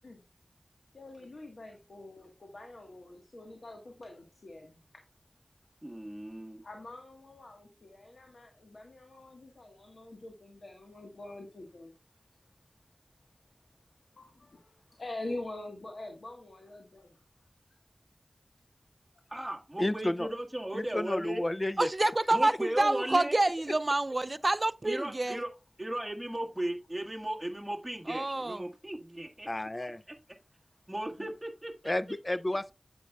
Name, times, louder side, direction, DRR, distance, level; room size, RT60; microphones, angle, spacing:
voice 1, 0.9-4.8 6.6-11.9 14.1-17.5 31.0-31.3, left 2 dB, 85° left, 1.4 m, -45 dB
voice 2, 5.8-6.6 19.3-21.4 22.3-23.4 24.8-25.5 25.8-29.5 30.1-30.2 30.9-31.9, right 1 dB, 10° right, 1.6 m, -36 dB
voice 3, 19.8-20.3 20.7-21.9 29.5-30.0 31.8-32.7, left 1 dB, 35° left, 0.5 m, -31 dB
voice 4, 21.8-25.4 28.1-28.7, right 2 dB, 50° right, 0.4 m, -28 dB
9.1 x 7.7 x 2.3 m
wide cardioid pair, 45°, 0 cm